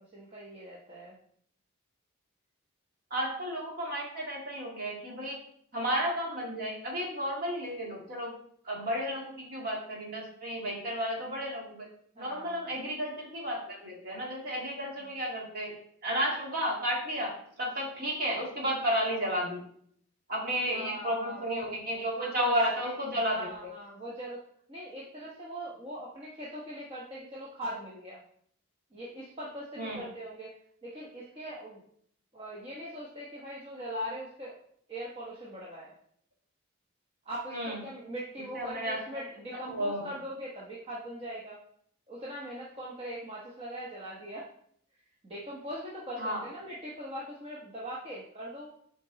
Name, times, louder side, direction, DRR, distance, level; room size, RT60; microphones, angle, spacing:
voice 1, 0.1-1.2 12.1-12.7 14.9-15.1 20.7-21.7 22.1-24.4 24.7-28.2 28.9-30.5 30.8-31.8 32.3-34.6 34.9-35.9 37.2-41.6 42.1-44.5 45.2-48.7, right 1 dB, 30° right, -5 dB, 1.1 m, -40 dB
voice 2, 3.1-5.4 5.7-8.3 8.6-11.9 12.2-15.7 16.0-17.3 17.6-19.6 20.3-23.5 29.8-30.1 37.5-37.8 38.5-39.0 39.7-40.1 46.2-46.4, equal, 45° right, -2 dB, 2.2 m, -32 dB
7.3 x 4.5 x 4.0 m, 0.65 s
head